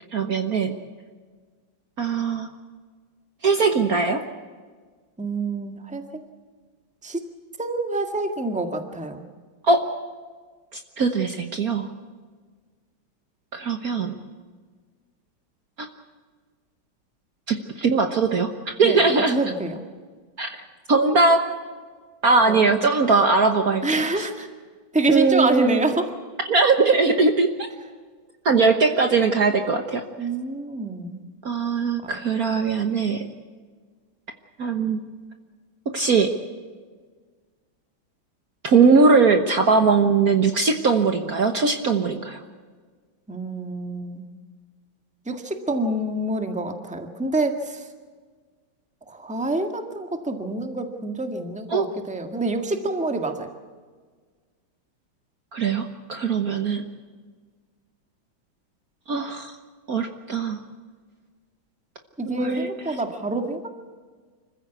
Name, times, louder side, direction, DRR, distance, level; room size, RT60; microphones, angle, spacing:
voice 1, 0.1-0.7 2.0-2.5 3.4-4.2 9.7-9.8 11.0-11.9 13.5-14.1 15.8-15.9 17.5-18.5 18.8-19.3 20.4-20.5 20.9-21.4 22.2-24.2 25.1-25.8 26.5-27.5 28.4-30.0 31.4-33.2 34.6-35.0 35.9-36.3 38.6-42.4 51.7-51.9 55.5-56.8 59.1-59.5 59.9-60.6 62.3-62.7, right 4 dB, 50° right, 6 dB, 1.5 m, -20 dB
voice 2, 5.2-6.0 7.0-7.2 7.6-9.2 18.8-19.8 22.5-22.7 23.8-24.5 24.9-26.1 30.2-31.2 32.0-32.2 43.3-44.2 45.2-47.9 49.1-53.5 62.2-63.7, right 2 dB, 5° right, 5 dB, 1.6 m, -27 dB
26.0 x 15.0 x 8.1 m, 1.5 s
omnidirectional pair, 2.3 m